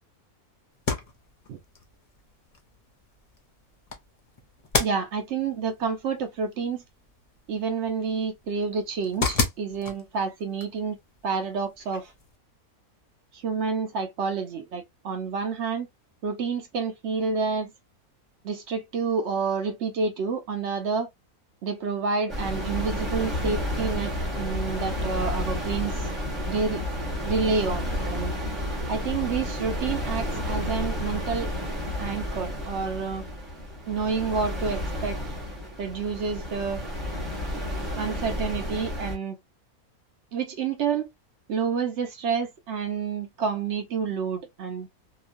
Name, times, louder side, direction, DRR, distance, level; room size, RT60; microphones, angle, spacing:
sound 1, 0.7-12.4, left 4 dB, 45° left, 0.5 m, -35 dB
voice 1, 4.8-6.8 7.5-11.0 11.2-12.1 13.3-15.9 16.2-17.7 18.4-21.1 21.6-26.1 26.5-26.8 27.2-28.3 28.9-31.5 32.0-33.2 33.9-35.2 35.8-36.8 38.0-39.4 40.3-41.1 41.5-44.9, right 5 dB, 60° right, 0.8 m, -29 dB
sound 2, 22.3-39.2, left 1 dB, ahead, 0.8 m, -31 dB
2.9 x 2.3 x 2.4 m
omnidirectional pair, 1.6 m